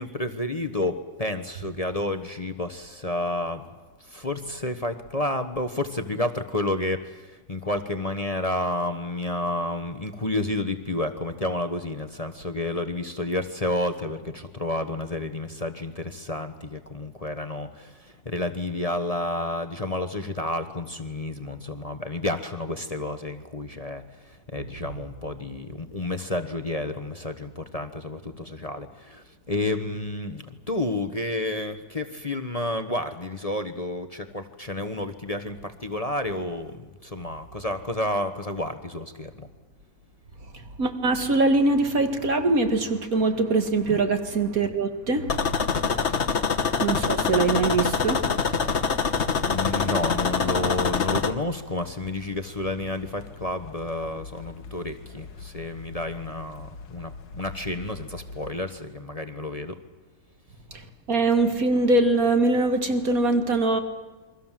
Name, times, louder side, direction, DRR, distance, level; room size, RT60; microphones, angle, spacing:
voice 1, 0.0-3.6 4.0-39.5 43.9-44.0 46.1-46.3 49.5-59.8, left 1 dB, 25° left, 8 dB, 1.1 m, -30 dB
voice 2, 40.4-46.3 46.8-49.6 60.7-63.8, right 3 dB, 50° right, 7 dB, 2.4 m, -24 dB
sound 1, 45.3-51.3, left 5 dB, 40° left, 1.4 m, -25 dB
sound 2, 47.7-58.5, left 4 dB, 70° left, 2.0 m, -44 dB
28.5 x 23.5 x 7.5 m, 1.2 s
omnidirectional pair, 2.0 m